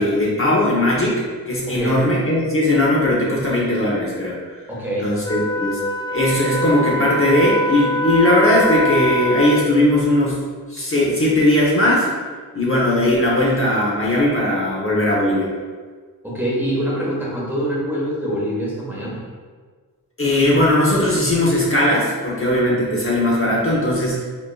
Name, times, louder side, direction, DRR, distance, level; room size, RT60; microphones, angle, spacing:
voice 1, 0.0-4.5 5.0-5.8 6.1-10.4 10.7-12.1 12.5-15.5 20.2-24.2, left 1 dB, 35° left, -5 dB, 0.9 m, -18 dB
voice 2, 1.7-2.0 4.7-5.1 16.2-19.2, equal, 5° right, -6 dB, 1.1 m, -24 dB
Wind instrument woodwind instrument, 5.2-9.9, equal, 10° left, 0.3 m, -23 dB
5.3 x 2.9 x 2.3 m, 1.5 s
wide cardioid pair, 75°, 36 cm